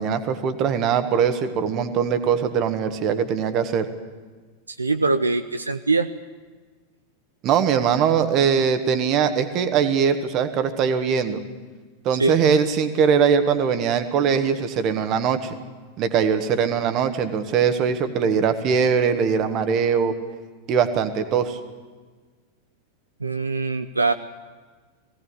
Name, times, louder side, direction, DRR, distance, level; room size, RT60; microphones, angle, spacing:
voice 1, 0.0-3.9 7.4-11.4 12.0-15.5 16.0-20.2 20.7-21.6, right 7 dB, 35° right, 9 dB, 1.6 m, -21 dB
voice 2, 4.7-6.1 12.2-12.4 23.2-24.1, right 3 dB, 80° right, 9 dB, 0.6 m, -22 dB
19.5 x 17.0 x 8.4 m, 1.4 s
figure-of-eight pair, 90°, 0 cm